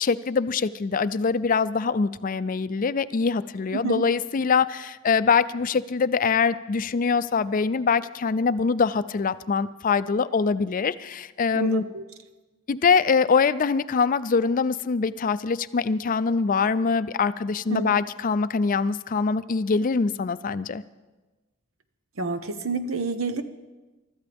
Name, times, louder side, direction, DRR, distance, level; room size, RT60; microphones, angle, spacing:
voice 1, 0.0-11.8 12.7-20.8, left 5 dB, 40° left, 14 dB, 0.4 m, -23 dB
voice 2, 3.7-4.0 11.5-12.0 17.7-18.0 22.2-23.4, right 4 dB, 85° right, 9 dB, 1.0 m, -29 dB
23.5 x 13.0 x 3.5 m, 1.2 s
head